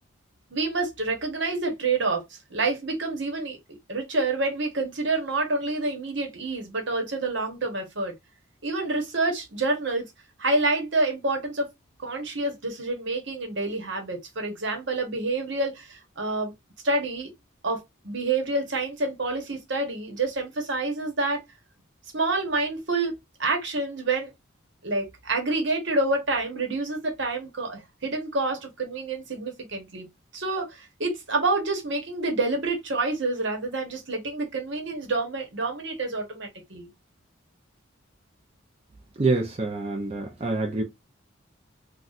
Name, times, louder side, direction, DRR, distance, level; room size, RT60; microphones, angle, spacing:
voice 1, 0.5-2.2 2.5-8.1 8.6-10.1 10.4-11.7 12.0-16.5 16.8-17.3 17.6-21.4 22.1-24.3 24.8-30.1 30.3-36.9, right 2 dB, 65° right, 1.1 m, -28 dB
voice 2, 39.2-40.8, right 3 dB, 30° right, 0.5 m, -26 dB
4.0 x 2.3 x 2.4 m
head